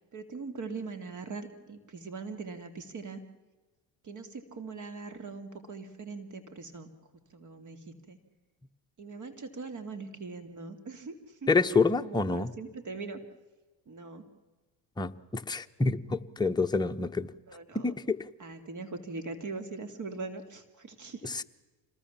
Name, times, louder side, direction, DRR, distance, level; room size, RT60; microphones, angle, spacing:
voice 1, 0.1-3.2 4.0-6.9 7.3-8.2 9.0-11.5 12.0-13.2 13.9-14.2 17.5-17.9 18.4-21.3, right 4 dB, 45° right, 9 dB, 2.7 m, -41 dB
voice 2, 11.5-12.5 15.0-17.3 17.7-18.3 21.2-21.4, left 4 dB, 10° left, 5 dB, 1.0 m, -28 dB
26.5 x 20.0 x 7.3 m, 1.2 s
supercardioid pair, 95°, 42 cm